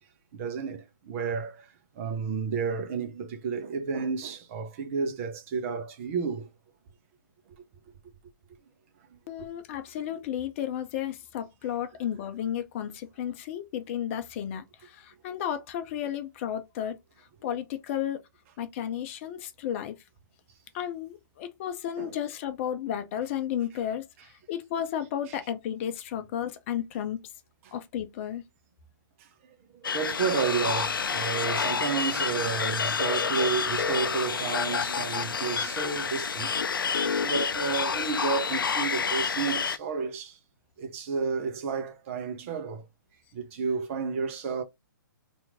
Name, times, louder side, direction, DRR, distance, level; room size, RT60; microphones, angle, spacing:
voice 1, 0.3-1.7 2.0-6.5 22.0-22.2 25.3-25.4 27.6-27.7 29.2-29.3 29.7-36.5 37.0-40.4 40.8-42.9 43.3-44.6, right 5 dB, 40° right, 0.7 m, -31 dB
voice 2, 9.3-16.9 17.4-18.2 18.6-19.9 20.7-27.2 27.7-28.4, left 10 dB, 35° left, 0.6 m, -33 dB
sound 1, 29.8-39.8, left 6 dB, 80° left, 0.4 m, -29 dB
2.9 x 2.6 x 3.5 m
figure-of-eight pair, 130°, 11 cm